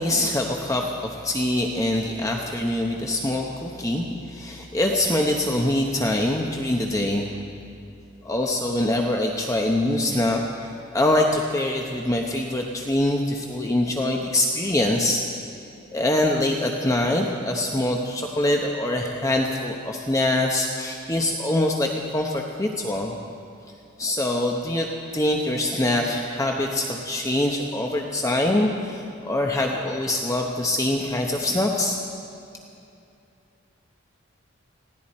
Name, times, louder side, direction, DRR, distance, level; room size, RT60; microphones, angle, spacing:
voice 1, 0.0-7.3 8.2-15.2 15.9-23.1 24.0-24.9 25.1-32.0, left 1 dB, 15° left, 1 dB, 0.9 m, -24 dB
19.5 x 16.5 x 4.3 m, 2.6 s
head